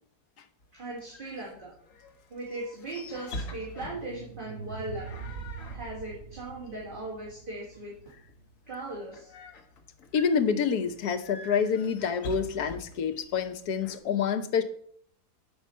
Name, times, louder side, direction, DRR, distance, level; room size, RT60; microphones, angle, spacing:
sound 1, 0.6-14.0, left 1 dB, 55° left, 1.4 m, -46 dB
voice 1, 0.7-1.7 2.3-5.1 5.7-7.9 8.7-9.3, right 2 dB, 30° right, -4 dB, 2.1 m, -38 dB
sound 2, 3.5-8.6, right 6 dB, 90° right, 0.4 m, -43 dB
voice 2, 10.1-14.6, left 6 dB, 70° left, 9 dB, 1.4 m, -27 dB
11.5 x 4.8 x 5.6 m, 0.65 s
omnidirectional pair, 1.7 m